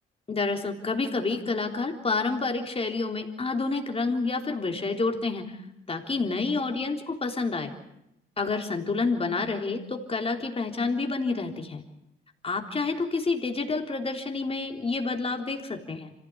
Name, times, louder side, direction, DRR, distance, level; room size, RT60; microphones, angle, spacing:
voice 1, 0.3-5.6 5.9-7.7 8.4-11.8 12.4-16.1, left 3 dB, 30° left, 3 dB, 3.6 m, -29 dB
26.0 x 16.0 x 8.7 m, 0.84 s
cardioid pair, 90°, 20 cm